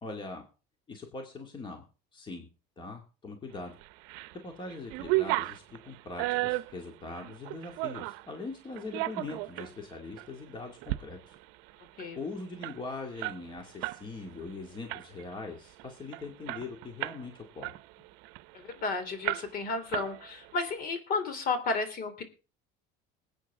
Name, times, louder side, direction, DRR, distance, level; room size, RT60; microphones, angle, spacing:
voice 1, 0.0-0.4 0.9-1.8 2.1-2.5 2.8-3.8 4.4-11.4 12.1-17.8, left 3 dB, 25° left, 3 dB, 2.3 m, -41 dB
sound 1, 3.8-4.3 4.7-8.3 8.8-9.7 10.2-10.3 10.7-11.0 11.3-11.4 11.7-14.0 14.3-14.5 14.9-15.3 15.8-15.9 16.1-17.3 17.6-18.8 19.2-19.7 19.9-20.6, right 20 dB, 75° right, 0.7 m, -34 dB
voice 2, 18.5-22.2, left 3 dB, 45° left, 9 dB, 3.3 m, -32 dB
21.0 x 9.2 x 3.6 m, 0.34 s
cardioid pair, 130°, 20 cm